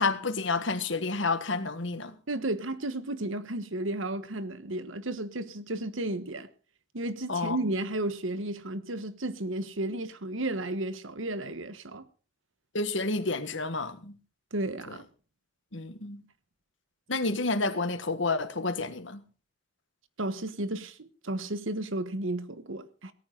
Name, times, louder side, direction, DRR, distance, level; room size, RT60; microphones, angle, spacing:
voice 1, 0.0-2.1 7.3-7.6 12.7-14.2 14.9-15.0 15.7-16.2 17.1-19.2, left 3 dB, 70° left, 1.6 m, -30 dB
voice 2, 2.3-6.5 6.9-12.0 14.5-15.0 20.2-23.1, right 1 dB, 80° right, 1.3 m, -33 dB
17.5 x 14.0 x 3.9 m
head